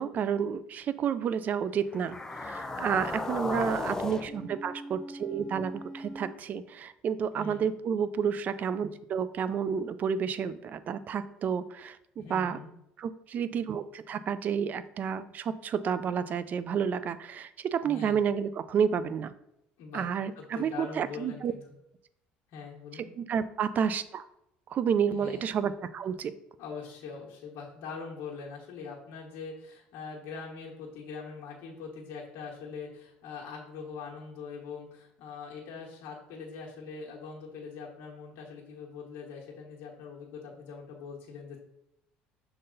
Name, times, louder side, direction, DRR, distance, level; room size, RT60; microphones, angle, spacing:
voice 1, 0.0-2.2 2.4-12.6 13.0-19.3 19.9-21.5 23.2-24.2 24.7-26.3, right 7 dB, 45° right, 14 dB, 0.4 m, -30 dB
sound 1, 1.9-6.3, left 2 dB, 15° left, 0.6 m, -36 dB
voice 2, 2.9-3.2 3.5-4.4 7.3-7.7 11.2-11.3 12.2-12.7 17.8-18.2 19.8-20.1 20.3-21.6 22.5-23.1 25.2-25.5 26.6-41.6, left 5 dB, 70° left, -3 dB, 1.3 m, -43 dB
6.4 x 4.0 x 3.9 m, 0.80 s
supercardioid pair, 100°, 4 cm